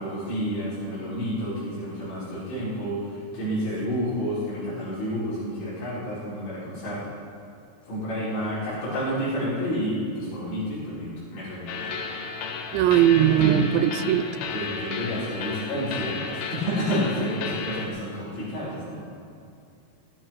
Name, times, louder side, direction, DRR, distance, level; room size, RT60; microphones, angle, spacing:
voice 1, 0.0-3.1 3.3-7.0 7.9-11.9 13.4-13.7 14.5-19.0, equal, 65° left, -11 dB, 7.0 m, -30 dB
sound 1, 11.7-17.9, left 5 dB, 80° left, 3.3 m, -34 dB
voice 2, 12.7-14.3, right 11 dB, 85° right, 12 dB, 2.9 m, -19 dB
19.0 x 14.5 x 4.7 m, 2.4 s
omnidirectional pair, 5.0 m